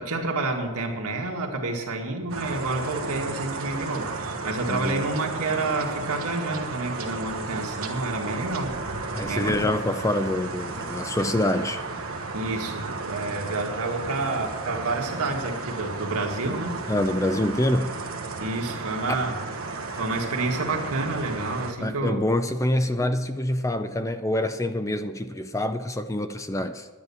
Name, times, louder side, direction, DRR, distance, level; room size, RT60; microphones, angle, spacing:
voice 1, 0.0-8.7 9.3-9.7 12.3-16.8 18.4-19.4 19.9-22.2, right 2 dB, 85° right, 1.9 m, -29 dB
sound 1, 2.3-21.7, right 3 dB, 65° right, 1.2 m, -34 dB
voice 2, 4.7-5.1 9.1-11.8 16.9-17.9 21.8-26.9, left 1 dB, 15° left, 0.4 m, -26 dB
10.5 x 9.4 x 7.1 m
head